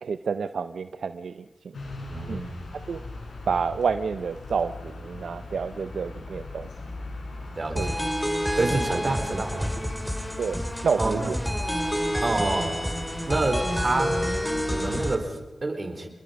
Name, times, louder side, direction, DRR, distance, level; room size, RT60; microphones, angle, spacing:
voice 1, 0.0-1.4 2.3-2.4 2.9-3.0 3.5-6.7 7.8-7.9 10.4-11.3, right 5 dB, 80° right, 11 dB, 0.6 m, -29 dB
sound 1, 1.7-15.1, left 2 dB, 80° left, 5.9 m, -39 dB
voice 2, 2.1-2.7 7.6-8.0 8.6-9.8 11.0-11.3 12.2-12.8 13.2-14.2 14.7-16.1, right 2 dB, 45° right, 5 dB, 4.3 m, -28 dB
sound 2, 7.8-15.1, equal, ahead, 3.2 m, -29 dB
26.5 x 22.0 x 5.3 m, 1.1 s
cardioid pair, 45°, 0 cm